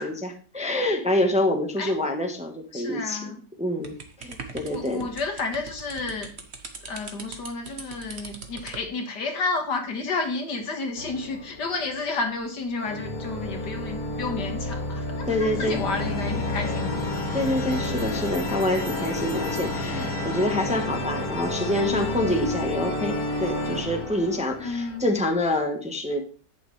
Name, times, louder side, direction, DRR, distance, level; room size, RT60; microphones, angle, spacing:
voice 1, 0.0-5.0 15.3-15.8 17.3-26.2, left 1 dB, 5° right, 3 dB, 1.0 m, -26 dB
voice 2, 2.7-3.4 4.7-6.3 6.9-17.0 24.6-25.0, left 3 dB, 80° left, 4 dB, 2.3 m, -31 dB
sound 1, 3.8-8.9, right 4 dB, 45° right, 1.4 m, -41 dB
sound 2, 11.0-12.2 12.8-25.4, left 1 dB, 60° left, 2.4 m, -30 dB
sound 3, 17.0-21.0, equal, 25° right, 4.0 m, -48 dB
10.5 x 8.4 x 3.3 m, 0.40 s
omnidirectional pair, 1.8 m